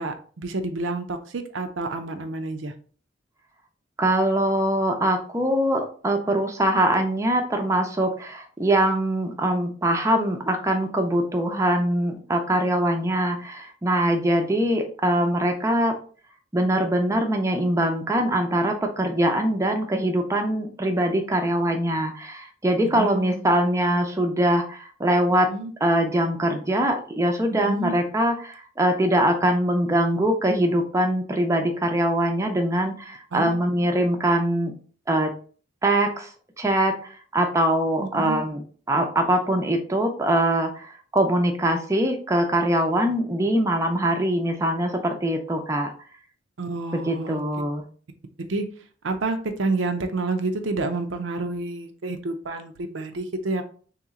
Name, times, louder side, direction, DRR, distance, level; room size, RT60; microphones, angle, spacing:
voice 1, 0.0-2.7 22.9-23.4 25.5-25.7 27.5-27.9 33.3-33.5 38.0-38.4 46.6-47.4 48.4-48.7 49.0-53.6, right 2 dB, 85° right, 7 dB, 0.6 m, -29 dB
voice 2, 4.0-16.0 16.5-25.5 25.8-34.7 35.1-35.3 35.8-36.3 36.6-38.6 38.9-45.9 47.1-47.8, right 1 dB, 15° right, 4 dB, 0.5 m, -23 dB
3.2 x 3.0 x 3.6 m, 0.42 s
head